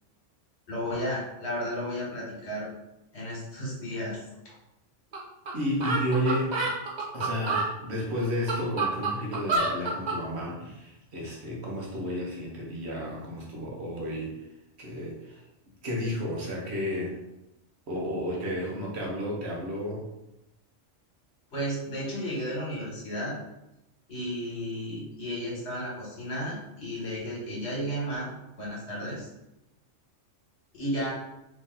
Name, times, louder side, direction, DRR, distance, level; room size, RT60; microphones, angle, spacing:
voice 1, 0.7-2.7 3.1-4.2 4.4-4.5 21.5-23.3 24.1-28.3 28.6-29.3 30.7-31.1, equal, 60° left, -4 dB, 1.4 m, -33 dB
sound 1, 5.1-5.2 5.5-5.6 5.8-7.7 8.2-10.2, right 3 dB, 45° right, 0.7 m, -28 dB
voice 2, 5.5-6.7 7.1-14.4 14.8-15.4 15.8-17.2 17.9-20.0, equal, 65° right, -3 dB, 1.1 m, -32 dB
3.1 x 2.7 x 3.6 m, 0.92 s
omnidirectional pair, 1.3 m